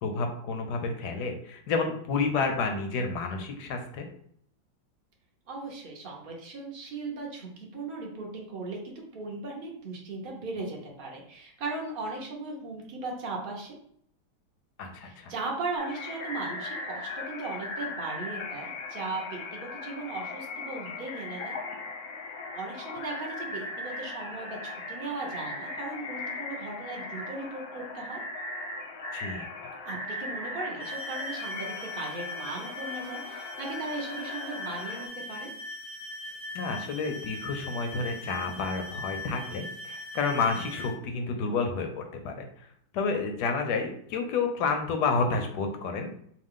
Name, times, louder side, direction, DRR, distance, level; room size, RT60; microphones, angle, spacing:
voice 1, 0.0-4.1 14.8-15.3 29.1-29.5 36.5-46.1, left 4 dB, 70° left, 5 dB, 1.0 m, -30 dB
voice 2, 5.5-13.8 15.0-21.6 22.5-28.2 29.8-35.5, right 3 dB, 65° right, -1 dB, 0.5 m, -37 dB
sound 1, 15.8-35.1, left 2 dB, 90° left, 1.6 m, -38 dB
sound 2, 30.8-40.9, left 2 dB, 50° left, 0.7 m, -40 dB
4.8 x 2.3 x 3.6 m, 0.66 s
omnidirectional pair, 2.2 m